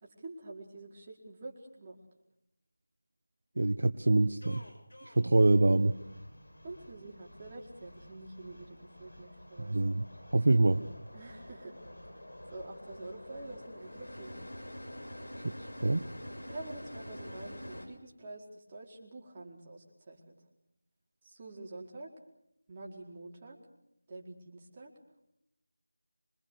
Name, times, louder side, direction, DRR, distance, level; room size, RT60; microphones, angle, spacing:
voice 1, 0.0-2.0 5.2-5.4 6.6-9.8 11.1-11.8 12.5-14.4 16.5-20.4 21.2-22.1 22.7-23.6 24.1-24.9, right 2 dB, 25° right, -1 dB, 4.7 m, -47 dB
voice 2, 3.6-4.6 5.2-6.0 9.6-10.0 10.3-10.8 15.4-16.0, right 2 dB, 65° right, 10 dB, 1.1 m, -25 dB
sound 1, 4.4-17.9, left 1 dB, 80° left, 6.7 m, -48 dB
26.0 x 24.0 x 6.7 m, 0.82 s
figure-of-eight pair, 170°, 0 cm